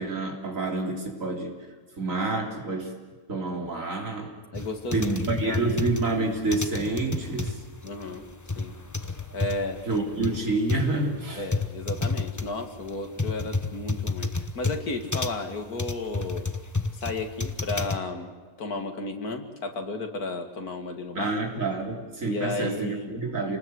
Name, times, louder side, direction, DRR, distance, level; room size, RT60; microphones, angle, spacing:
voice 1, 0.0-1.5 2.0-2.9 3.3-4.3 4.9-7.5 9.9-11.4 21.1-23.6, right 3 dB, 60° right, 2 dB, 3.9 m, -28 dB
voice 2, 4.5-5.2 5.4-5.8 7.8-8.2 8.6-8.7 9.3-9.8 11.4-16.5 16.9-18.3 18.6-21.3 22.3-23.2 23.5-23.6, left 2 dB, 90° left, 6 dB, 2.7 m, -33 dB
sound 1, 4.5-18.0, left 3 dB, 15° left, 0.8 m, -30 dB
28.5 x 19.5 x 7.9 m, 1.4 s
omnidirectional pair, 1.5 m